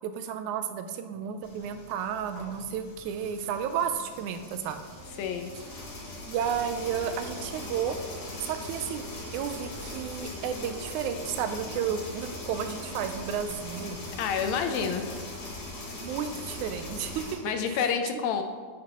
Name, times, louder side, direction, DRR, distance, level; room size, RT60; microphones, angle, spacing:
voice 1, 0.0-4.8 6.3-8.0 8.4-9.0 9.3-14.0 16.0-17.8, right 8 dB, 85° right, 8 dB, 2.0 m, -32 dB
sound 1, 1.1-17.7, right 5 dB, 65° right, 1.4 m, -52 dB
sound 2, 1.4-17.3, left 2 dB, 60° left, 2.9 m, -41 dB
sound 3, 4.3-14.3, left 1 dB, 45° right, 2.5 m, -51 dB
voice 2, 5.2-5.5 14.2-15.1 17.4-18.4, left 7 dB, 80° left, 6 dB, 1.9 m, -28 dB
9.2 x 7.5 x 3.0 m, 1.5 s
omnidirectional pair, 3.4 m